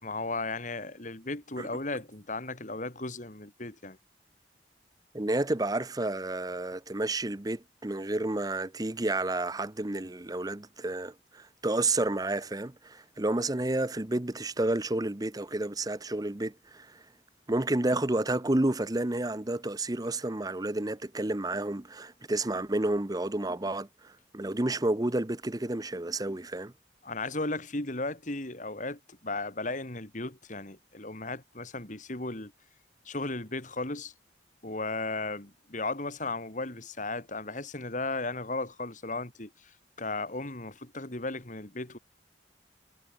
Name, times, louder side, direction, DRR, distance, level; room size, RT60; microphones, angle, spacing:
voice 1, 0.0-4.0 27.0-32.5 33.0-34.1 34.6-42.0, left 2 dB, 45° left, 2.8 m, -35 dB
voice 2, 5.1-17.0 17.5-26.7, right 2 dB, 20° right, 0.8 m, -30 dB
head